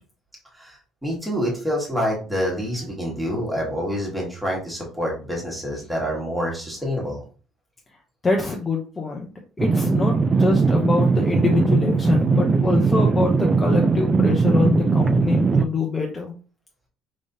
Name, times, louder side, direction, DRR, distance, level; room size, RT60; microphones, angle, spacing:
voice 1, 0.6-7.2, equal, 5° right, -3 dB, 1.4 m, -27 dB
voice 2, 8.2-9.3 9.6-16.3, left 3 dB, 15° left, 0 dB, 0.7 m, -25 dB
sound 1, 9.6-15.6, right 4 dB, 20° right, 0.3 m, -19 dB
5.0 x 3.5 x 2.7 m, 0.37 s
cardioid pair, 160°, 0 cm